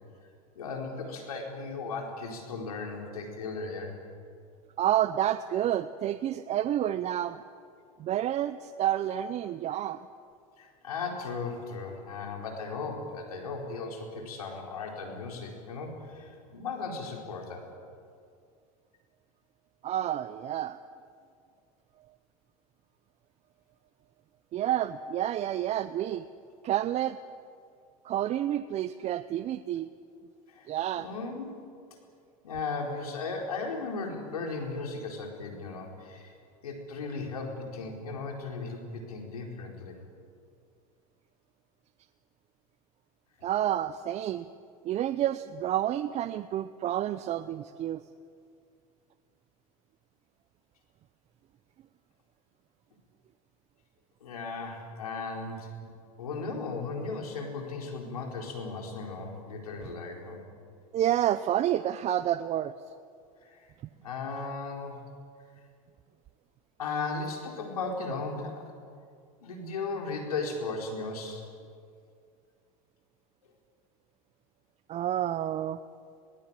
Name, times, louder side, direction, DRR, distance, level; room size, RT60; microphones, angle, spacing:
voice 1, 0.6-4.0 10.6-17.7 30.5-31.5 32.4-36.3 36.6-40.0 54.2-55.7 56.2-60.4 63.4-63.7 64.0-65.0 66.8-68.6 69.4-71.4, left 4 dB, 90° left, 1 dB, 4.5 m, -36 dB
voice 2, 4.8-7.4 8.0-10.1 19.8-20.8 24.5-26.3 26.6-27.2 28.0-29.9 30.7-31.1 43.4-44.5 44.8-48.0 60.9-62.7 74.9-75.8, right 11 dB, 35° right, 12 dB, 0.7 m, -29 dB
22.0 x 19.5 x 9.0 m, 2.3 s
hypercardioid pair, 100°, 19 cm